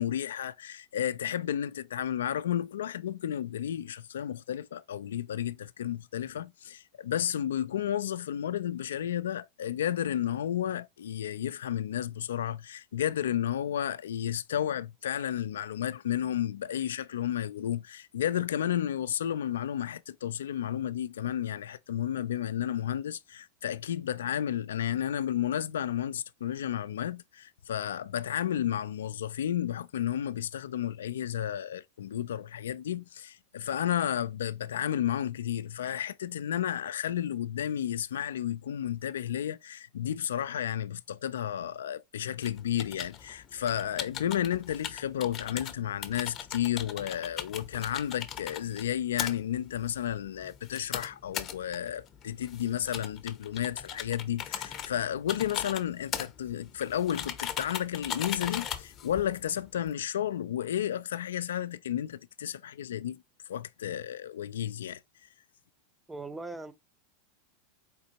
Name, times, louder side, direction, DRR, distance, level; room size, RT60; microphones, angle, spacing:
voice 1, 0.0-63.2 63.5-65.0, left 10 dB, 80° left, 0.3 m, -32 dB
sound 1, 42.4-59.9, left 9 dB, 40° left, 0.7 m, -40 dB
voice 2, 66.1-66.7, right 3 dB, 10° right, 0.5 m, -39 dB
4.2 x 3.7 x 2.8 m
hypercardioid pair, 105°, 0 cm